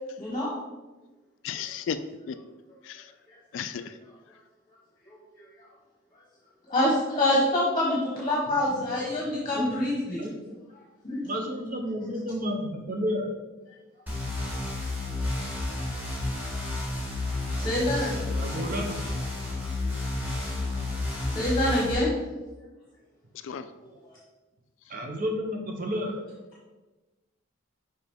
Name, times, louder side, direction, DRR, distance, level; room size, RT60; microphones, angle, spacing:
voice 1, 0.2-0.5 6.7-10.2 11.0-11.2 17.5-18.1 21.3-22.1, left 1 dB, 25° left, -4 dB, 1.0 m, -25 dB
voice 2, 1.4-2.0 2.3-2.4 2.8-3.1 3.5-3.9 23.4-23.7, left 8 dB, 65° left, 11 dB, 0.3 m, -33 dB
voice 3, 8.5-9.2 9.5-9.9 10.2-10.5 11.2-13.3 18.3-19.0 24.9-26.1, equal, 40° right, 2 dB, 0.9 m, -32 dB
sound 1, 14.1-21.9, left 2 dB, 10° right, 1.6 m, -31 dB
5.7 x 4.8 x 3.5 m, 1.2 s
head